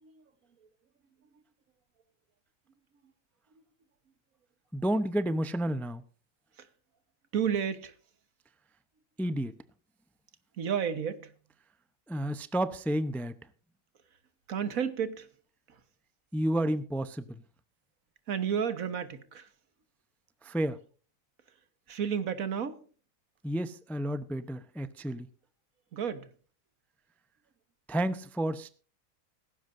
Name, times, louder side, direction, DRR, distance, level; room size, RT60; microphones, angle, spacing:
voice 1, 4.7-6.0 9.2-9.5 12.1-13.3 16.3-17.4 20.4-20.8 23.4-25.3 27.9-28.8, right 1 dB, ahead, 0.4 m, -31 dB
voice 2, 7.3-7.9 10.6-11.3 14.5-15.3 15.7-15.8 18.3-19.5 21.9-22.8 25.9-26.3, right 7 dB, 80° right, 1.7 m, -32 dB
18.0 x 15.5 x 2.6 m
omnidirectional pair, 1.4 m